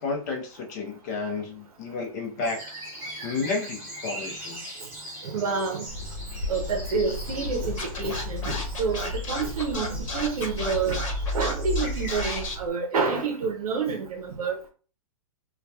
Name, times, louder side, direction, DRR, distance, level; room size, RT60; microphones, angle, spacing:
voice 1, 0.0-2.6 3.2-4.6, left 4 dB, 30° left, 0.6 m, -31 dB
sound 1, 2.4-12.4, equal, 15° right, 0.8 m, -41 dB
voice 2, 5.2-5.9 6.5-11.0 11.3-14.6, right 5 dB, 80° right, 0.6 m, -28 dB
sound 2, 5.9-12.7, left 2 dB, 85° left, 0.9 m, -33 dB
Scratching (performance technique), 7.8-12.5, left 2 dB, 60° left, 1.0 m, -33 dB
2.7 x 2.2 x 2.2 m
hypercardioid pair, 175°, 19 cm